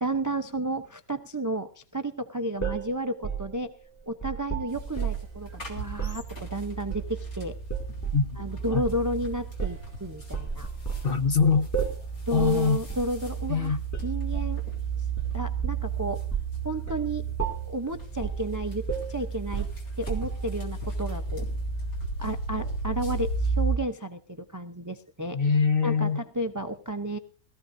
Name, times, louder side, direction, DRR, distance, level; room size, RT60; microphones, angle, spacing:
voice 1, 0.0-3.7 4.1-7.6 8.4-10.7 12.3-14.6 15.0-15.1 15.3-16.2 16.6-17.2 17.7-19.7 20.0-21.4 22.2-25.4 25.8-27.2, right 1 dB, 25° right, 0.4 m, -32 dB
sound 1, 2.6-5.4 5.9-6.2 6.9-7.3 7.7-8.3 8.8-9.0 9.6-9.9 10.3-11.1 11.7-12.1 12.4-12.6 12.9-13.1 13.9-14.6 15.2-15.9 16.3-16.6 16.9-17.1 17.4-17.8 18.2-18.5 18.9-20.5, right 6 dB, 10° left, 2.2 m, -33 dB
sound 2, 4.7-23.8, right 4 dB, 85° left, 3.7 m, -33 dB
voice 2, 8.1-8.5 8.7-8.8 11.0-11.7 12.3-12.8 13.5-13.8 25.3-26.2, left 5 dB, 45° left, 0.9 m, -23 dB
21.0 x 14.5 x 2.6 m
omnidirectional pair, 1.5 m